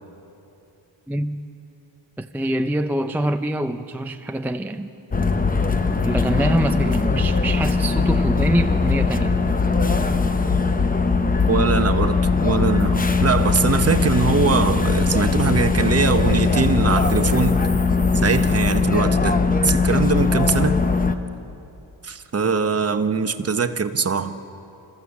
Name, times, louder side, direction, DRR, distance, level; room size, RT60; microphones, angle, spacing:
voice 1, 1.1-1.4 2.2-4.9 6.0-9.5, right 1 dB, 5° right, 7 dB, 0.4 m, -24 dB
sound 1, 5.1-21.1, left 4 dB, 20° left, 0.8 m, -20 dB
voice 2, 11.5-17.5 18.1-20.8 22.0-24.3, right 5 dB, 30° right, 9 dB, 0.9 m, -22 dB
28.0 x 14.5 x 7.2 m, 2.9 s
wide cardioid pair, 120°, 46 cm